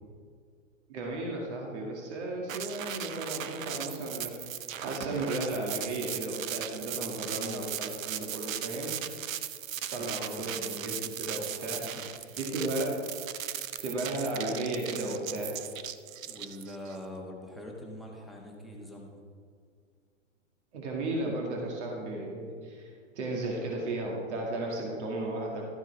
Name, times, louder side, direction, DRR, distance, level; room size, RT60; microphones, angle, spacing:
voice 1, 0.9-4.6 4.8-8.9 9.9-11.8 12.4-12.9 13.8-15.5 20.7-25.7, right 2 dB, 60° right, -1 dB, 2.2 m, -34 dB
sound 1, 2.5-16.9, right 10 dB, 80° right, 0.7 m, -38 dB
voice 2, 9.9-10.5 11.5-12.1 16.3-19.2, left 1 dB, ahead, 0 dB, 1.2 m, -44 dB
13.0 x 9.1 x 3.4 m, 2.1 s
hypercardioid pair, 140°, 39 cm